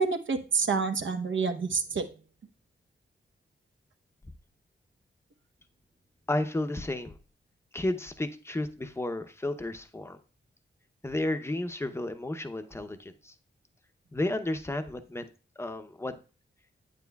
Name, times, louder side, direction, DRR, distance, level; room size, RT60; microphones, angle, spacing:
voice 1, 0.0-2.1, right 5 dB, 70° right, 7 dB, 0.9 m, -28 dB
voice 2, 6.3-7.2 7.7-10.2 11.0-13.3 14.1-15.3 15.6-16.1, left 1 dB, 10° left, 8 dB, 0.7 m, -32 dB
9.3 x 9.1 x 2.3 m, 0.36 s
wide cardioid pair, 125°, 20 cm